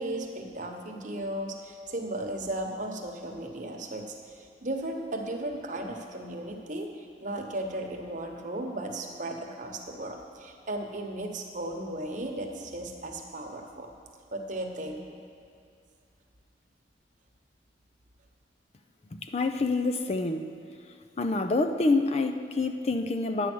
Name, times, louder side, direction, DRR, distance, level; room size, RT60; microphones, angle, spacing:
voice 1, 0.0-13.9 14.3-15.0, right 1 dB, 45° right, 2 dB, 1.1 m, -36 dB
voice 2, 19.1-20.5 21.2-23.5, left 3 dB, 35° left, 7 dB, 0.5 m, -27 dB
10.5 x 8.4 x 6.2 m, 2.3 s
head